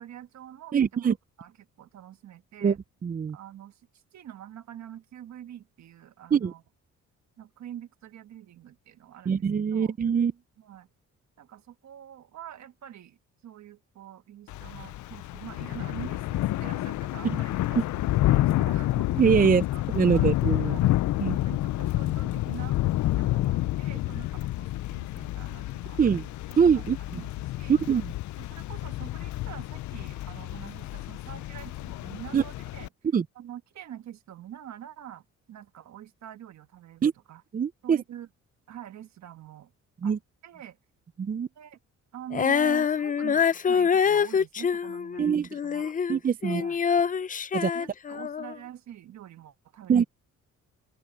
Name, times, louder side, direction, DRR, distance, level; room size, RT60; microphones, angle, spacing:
voice 1, 0.0-2.8 3.3-6.6 7.4-9.5 9.7-9.9 10.6-10.9 11.4-17.8 18.3-20.3 20.6-20.9 21.4-22.8 23.0-27.8 28.4-32.9 33.3-37.4 37.8-38.3 38.7-39.7 40.0-40.2 40.4-40.8 41.5-41.8 42.1-45.2 45.6-46.0 46.4-46.9 47.7-50.0, right 10 dB, 65° right, 1.6 m, -45 dB
voice 2, 0.7-1.1 2.6-2.7 3.0-3.4 6.3-6.5 9.3-10.3 17.2-17.3 19.2-20.8 21.2-21.4 26.0-26.3 26.6-27.2 27.7-28.0 32.3-32.4 33.1-33.2 37.0-37.1 37.5-38.0 40.0-40.2 41.2-41.5 45.2-45.5 46.1-46.6 47.5-47.7 49.9-50.0, right 7 dB, 30° right, 0.5 m, -23 dB
Thunder / Rain, 14.5-32.9, left 16 dB, 70° left, 0.6 m, -29 dB
Female singing, 42.3-46.2 46.4-48.6, left 7 dB, 25° left, 0.5 m, -25 dB
open air
cardioid pair, 90°, 30 cm